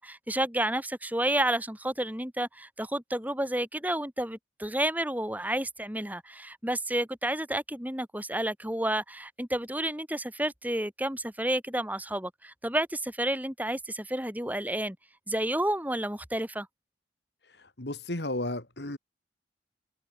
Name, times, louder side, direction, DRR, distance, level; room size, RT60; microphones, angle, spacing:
voice 1, 0.0-15.0 15.3-16.7, right 1 dB, 10° right, 5.6 m, -30 dB
voice 2, 17.4-19.0, left 1 dB, 70° left, 2.9 m, -34 dB
head